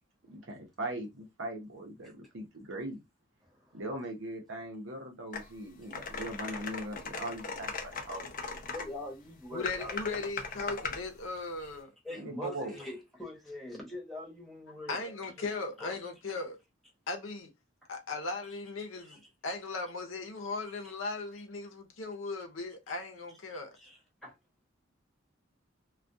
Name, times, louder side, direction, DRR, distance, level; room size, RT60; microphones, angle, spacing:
voice 1, 0.3-3.0 3.7-8.6 12.2-12.7, right 1 dB, 70° right, 0.8 m, -40 dB
voice 2, 3.4-3.8 5.8-6.0 8.4-10.3 11.6-11.7 12.0-16.0 18.8-19.2 20.7-20.9 22.9-23.0 23.5-24.4, left 1 dB, ahead, 1.0 m, -45 dB
sound 1, 5.3-5.4 5.9-8.9 9.7-11.0, left 5 dB, 45° left, 0.5 m, -38 dB
voice 3, 9.5-11.9 12.4-12.8 14.9-16.6 17.1-17.5 17.9-23.8, left 3 dB, 80° left, 0.7 m, -38 dB
2.3 x 2.3 x 2.6 m
head